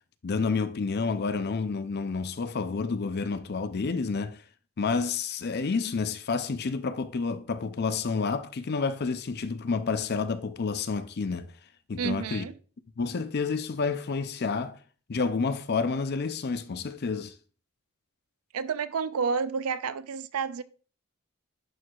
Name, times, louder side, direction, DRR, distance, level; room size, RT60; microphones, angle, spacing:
voice 1, 0.2-4.4 4.8-11.5 11.9-12.4 13.0-14.8 15.1-17.4, left 4 dB, 50° left, 0.5 m, -29 dB
voice 2, 12.0-12.5 18.5-20.6, right 5 dB, 90° right, 0.5 m, -30 dB
11.0 x 4.6 x 2.4 m
head